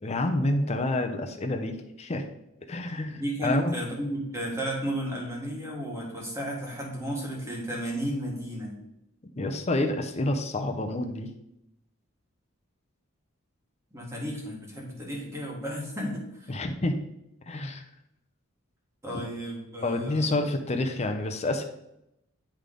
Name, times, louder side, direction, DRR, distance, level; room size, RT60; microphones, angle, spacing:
voice 1, 0.0-2.3 2.7-3.8 9.4-11.3 16.5-17.0 17.5-17.8 19.8-21.6, left 2 dB, 30° left, 6 dB, 0.6 m, -28 dB
voice 2, 3.1-8.8 13.9-16.5 19.0-20.4, equal, 15° right, -2 dB, 1.8 m, -33 dB
10.0 x 3.4 x 3.8 m, 0.82 s
head